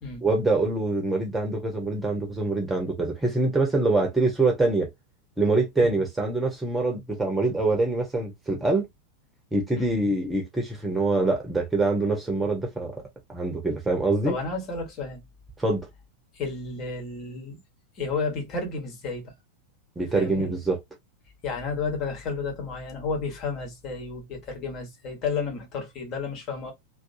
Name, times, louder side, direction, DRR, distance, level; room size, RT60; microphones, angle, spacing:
voice 1, 0.2-4.9 5.4-8.9 9.5-13.0 13.3-14.3 15.6-15.8 20.0-20.8, right 2 dB, 10° right, 1.2 m, -24 dB
voice 2, 14.2-15.2 16.3-17.6 17.9-19.3 20.1-20.5 21.4-26.7, left 4 dB, 35° left, 1.5 m, -32 dB
3.1 x 2.8 x 2.7 m
figure-of-eight pair, 90°, 0 cm